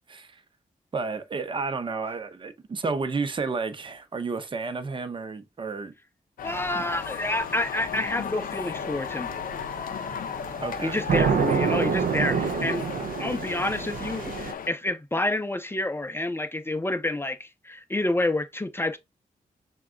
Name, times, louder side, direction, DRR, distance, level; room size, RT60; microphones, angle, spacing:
voice 1, 0.1-0.4 0.9-5.9 6.7-6.8 10.6-11.0, right 4 dB, 35° right, 0.6 m, -31 dB
sound 1, 6.4-14.7, left 8 dB, 75° left, 0.4 m, -35 dB
voice 2, 6.4-9.3 10.8-12.9 13.2-19.0, left 2 dB, 15° left, 0.5 m, -28 dB
sound 2, 6.5-14.5, right 6 dB, 75° right, 0.4 m, -29 dB
5.8 x 2.2 x 3.6 m
wide cardioid pair, 115°, 15 cm